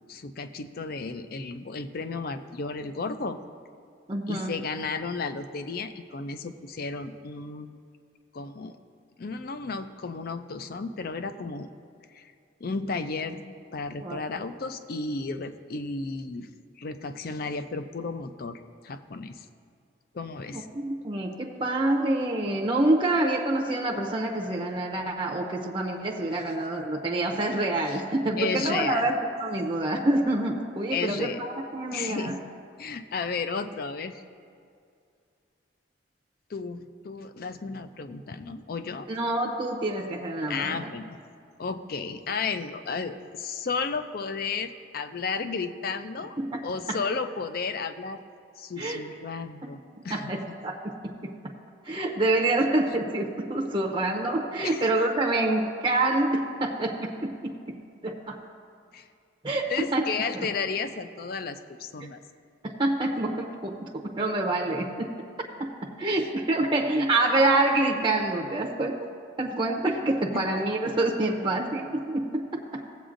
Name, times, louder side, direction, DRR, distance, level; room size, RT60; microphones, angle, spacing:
voice 1, 0.1-3.4 4.3-7.8 8.3-8.8 9.2-11.7 12.1-12.3 12.6-16.5 16.8-19.5 20.1-20.7 26.2-26.3 27.8-28.0 28.4-29.1 30.9-31.4 31.9-32.4 32.8-34.2 36.5-39.1 40.5-41.2 41.6-46.4 46.6-48.2 48.6-49.8 50.0-50.6 54.6-54.9 58.9-59.1 59.7-62.2, left 4 dB, 50° left, 10 dB, 0.4 m, -33 dB
voice 2, 4.1-4.6 14.0-14.2 20.5-32.4 39.1-40.9 46.4-46.6 46.9-47.0 48.8-49.0 50.1-50.8 51.2-51.4 51.8-57.5 58.0-58.4 59.4-60.1 60.3-60.5 62.8-65.1 65.6-69.0 69.4-72.6, right 2 dB, 25° right, -2 dB, 0.6 m, -27 dB
17.0 x 7.9 x 2.5 m, 2.3 s
head